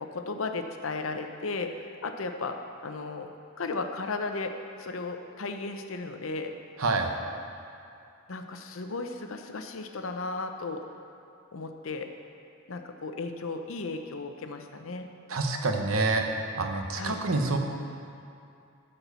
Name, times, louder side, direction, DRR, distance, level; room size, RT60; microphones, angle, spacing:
voice 1, 0.0-3.3 3.6-6.6 8.3-10.8 11.5-12.1 12.7-15.1 16.9-17.2, left 3 dB, 75° left, 6 dB, 0.7 m, -35 dB
voice 2, 6.8-7.1 15.3-17.6, right 3 dB, 80° right, 4 dB, 1.0 m, -27 dB
13.0 x 4.4 x 6.9 m, 2.5 s
head